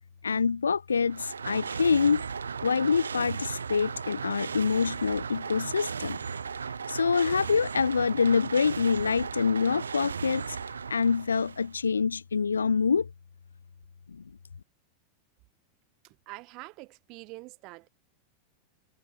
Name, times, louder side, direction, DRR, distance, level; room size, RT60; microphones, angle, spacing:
voice 1, 0.2-2.3 2.6-6.2 6.9-10.6 10.9-13.1 14.1-14.2, left 5 dB, 75° left, 0.9 m, -26 dB
Pistons of Hades, 0.9-11.8, right 6 dB, 70° right, 2.5 m, -36 dB
voice 2, 16.0-17.9, right 24 dB, 40° right, 7.7 m, -45 dB
figure-of-eight pair, 90°, 0 cm